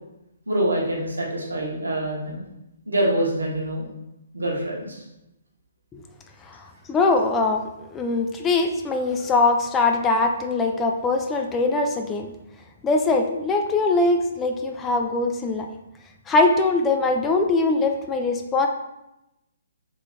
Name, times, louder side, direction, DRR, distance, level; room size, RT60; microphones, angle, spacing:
voice 1, 0.5-2.4 2.9-3.9 4.3-5.0, right 1 dB, 80° right, -3 dB, 1.3 m, -25 dB
voice 2, 6.9-7.6 7.9-12.3 12.8-15.7 16.3-18.7, left 3 dB, 15° left, 4 dB, 0.3 m, -22 dB
3.7 x 3.4 x 3.3 m, 0.90 s
figure-of-eight pair, 130°, 0 cm